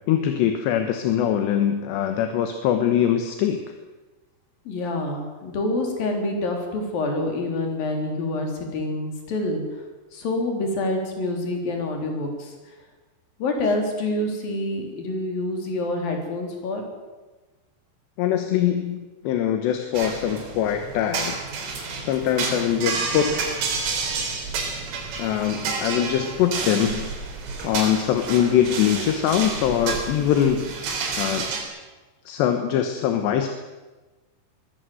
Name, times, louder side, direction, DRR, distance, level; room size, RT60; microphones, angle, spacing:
voice 1, 0.1-3.6 18.2-21.4 22.0-23.5 25.2-27.1 27.6-31.5 32.3-33.5, left 9 dB, 70° left, 6 dB, 3.0 m, -23 dB
voice 2, 4.6-9.8 10.1-12.7 13.4-16.8, left 2 dB, 50° left, 2 dB, 5.0 m, -27 dB
sound 1, 19.9-31.6, right 4 dB, 90° right, 6.4 m, -30 dB
23.0 x 17.5 x 7.9 m, 1.2 s
omnidirectional pair, 5.8 m